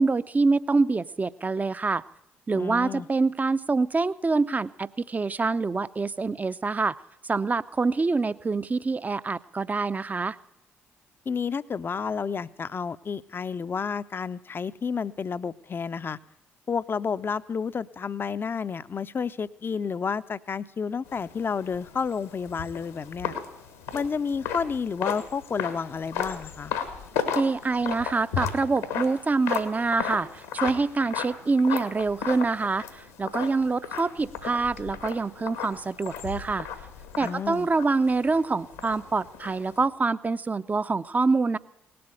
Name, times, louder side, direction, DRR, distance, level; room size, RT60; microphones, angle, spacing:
voice 1, 0.0-2.0 2.5-7.0 7.2-10.4 27.4-36.7 37.2-41.6, right 3 dB, 25° right, 15 dB, 0.5 m, -25 dB
voice 2, 2.5-3.1 11.3-16.2 16.7-23.3 23.9-26.7 37.2-37.7, left 6 dB, 35° left, 14 dB, 0.5 m, -30 dB
sound 1, 21.1-39.8, left 7 dB, 80° left, 1.4 m, -35 dB
18.5 x 7.8 x 8.9 m, 0.79 s
figure-of-eight pair, 45°, 6 cm